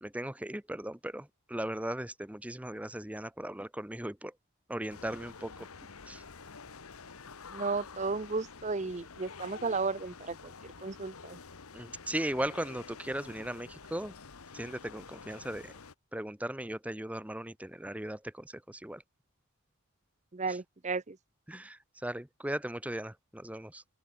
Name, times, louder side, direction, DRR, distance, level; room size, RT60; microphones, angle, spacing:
voice 1, 0.0-4.3 4.7-5.7 6.1-6.2 11.7-14.1 14.5-15.7 16.1-19.0 21.5-23.8, right 1 dB, 5° right, 0.9 m, -37 dB
sound 1, 4.9-15.9, left 5 dB, 85° left, 1.3 m, -49 dB
voice 2, 7.5-11.4 20.3-21.2, right 4 dB, 30° right, 0.6 m, -34 dB
open air
head